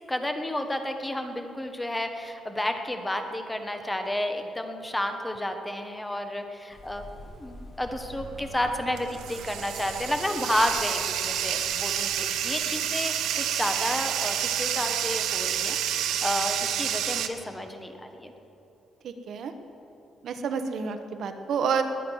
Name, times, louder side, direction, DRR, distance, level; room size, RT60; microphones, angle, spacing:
voice 1, 0.1-18.3, left 1 dB, 10° left, 6 dB, 1.0 m, -31 dB
sound 1, 6.7-12.4, left 1 dB, 30° left, 3.1 m, -48 dB
Bathtub (filling or washing), 8.1-17.3, right 10 dB, 90° right, 0.8 m, -29 dB
voice 2, 19.0-19.5 20.2-21.8, right 6 dB, 60° right, 8 dB, 1.0 m, -29 dB
20.5 x 9.4 x 6.3 m, 2.9 s
cardioid pair, 150°, 0 cm